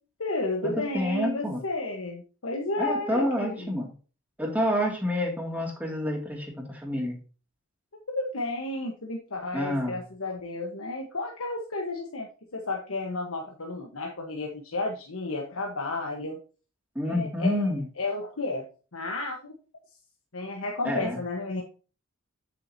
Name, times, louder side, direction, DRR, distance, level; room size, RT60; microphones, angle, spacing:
voice 1, 0.2-3.7 8.1-16.4 17.0-18.6 18.9-19.5 20.3-21.6, left 2 dB, 85° left, 0 dB, 1.3 m, -32 dB
voice 2, 0.9-1.6 2.8-3.9 4.4-7.2 9.5-10.0 16.9-17.8 20.8-21.2, equal, 10° right, -1 dB, 2.5 m, -28 dB
8.6 x 7.8 x 2.8 m, 0.36 s
head